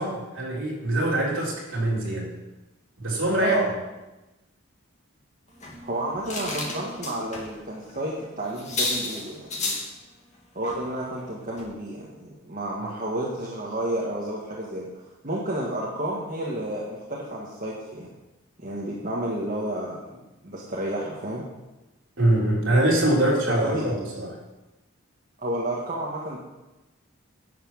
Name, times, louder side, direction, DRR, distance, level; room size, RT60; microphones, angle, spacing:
voice 1, 0.0-2.3 3.0-3.8 12.8-12.9 22.2-24.4, right 1 dB, 60° right, -5 dB, 4.1 m, -24 dB
sound 1, 5.6-7.5 7.8-8.0 8.2-8.3 8.6-9.9 10.6-10.8 11.2-11.3 11.6-11.7, left 2 dB, 35° left, 2.2 m, -32 dB
voice 2, 5.8-9.8 10.5-14.9 15.2-18.1 18.6-21.4 23.5-23.9 25.4-26.4, right 1 dB, 40° right, -5 dB, 1.7 m, -31 dB
11.0 x 6.0 x 7.4 m, 1.0 s
head